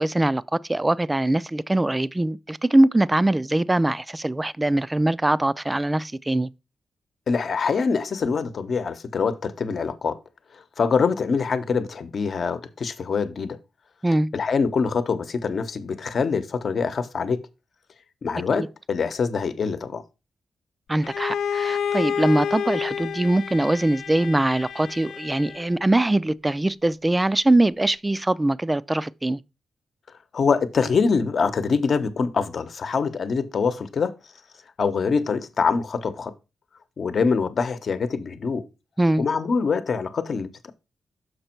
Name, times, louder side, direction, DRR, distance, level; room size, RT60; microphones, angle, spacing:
voice 1, 0.0-6.5 14.0-14.3 18.6-18.7 20.9-29.4 39.0-39.2, right 1 dB, 15° right, 0.4 m, -22 dB
voice 2, 7.3-10.2 10.8-13.6 14.3-17.4 18.2-20.0 30.3-34.2 34.8-36.3 37.0-38.7 39.2-40.7, left 5 dB, 60° left, 0.9 m, -24 dB
Bowed string instrument, 21.0-25.8, left 7 dB, 80° left, 0.4 m, -29 dB
6.7 x 5.2 x 4.4 m
cardioid pair, 70°, 0 cm